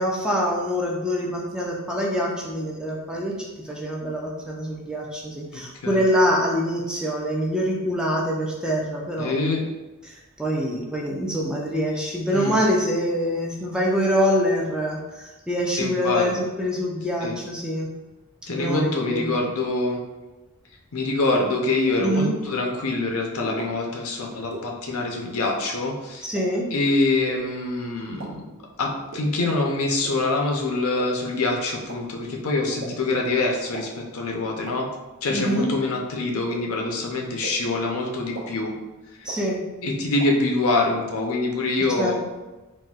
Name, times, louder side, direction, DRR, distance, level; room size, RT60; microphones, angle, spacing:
voice 1, 0.0-9.3 10.0-17.9 18.5-19.4 22.0-22.3 26.2-26.7 35.3-35.7 39.2-39.6 42.0-42.1, equal, 5° right, -3 dB, 0.3 m, -25 dB
voice 2, 5.5-6.0 9.2-9.6 12.3-12.6 15.8-16.4 17.2-17.4 18.5-20.0 20.9-26.3 26.7-28.5 28.8-34.9 35.2-38.7 39.2-39.3 39.8-42.1, left 2 dB, 75° left, 0 dB, 0.6 m, -25 dB
sound 1, 23.6-23.7 24.5-24.6 25.4-25.5 26.4-26.5 27.3-27.4 28.2-28.3 29.1-29.2 30.0-30.1 31.0-31.1 31.9-32.0 32.8-32.9 33.7-33.8 34.7-34.8 35.6-35.7 36.5-36.6 37.4-37.5 38.3-38.4 39.3-39.4 40.2-40.3, right 3 dB, 65° right, 0.6 m, -35 dB
4.0 x 2.1 x 2.3 m, 1.1 s
head